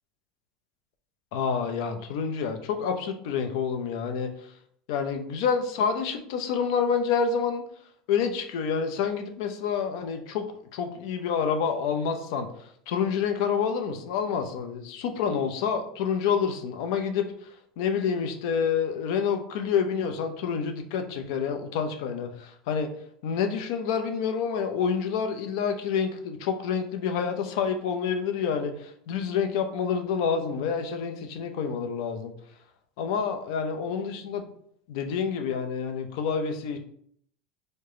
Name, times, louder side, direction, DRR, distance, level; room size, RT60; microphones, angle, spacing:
voice 1, 1.3-4.3 4.9-7.6 8.1-10.4 10.7-12.5 12.9-17.3 17.8-22.9 23.2-32.3 33.0-34.5 34.9-36.8, left 6 dB, 70° left, 6 dB, 0.6 m, -28 dB
4.8 x 2.2 x 3.7 m, 0.66 s
hypercardioid pair, 90°, 3 cm